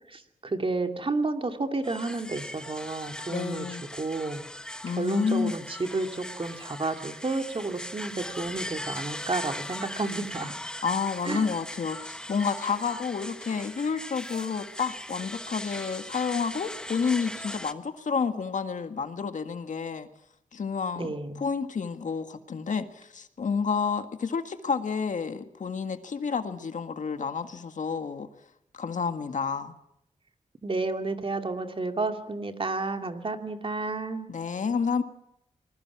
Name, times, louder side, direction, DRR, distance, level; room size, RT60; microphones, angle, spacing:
voice 1, 0.1-3.7 3.9-4.4 4.9-10.5 11.2-11.5 21.0-21.4 30.6-34.3, right 3 dB, 40° right, 5 dB, 2.6 m, -31 dB
sound 1, 1.8-17.7, left 1 dB, 5° left, 1.3 m, -39 dB
voice 2, 3.3-3.8 4.8-5.5 10.8-20.1 20.5-28.3 28.7-29.7 34.3-35.0, left 5 dB, 70° left, 8 dB, 1.8 m, -30 dB
26.5 x 20.5 x 6.1 m, 0.80 s
cardioid pair, 75°, 13 cm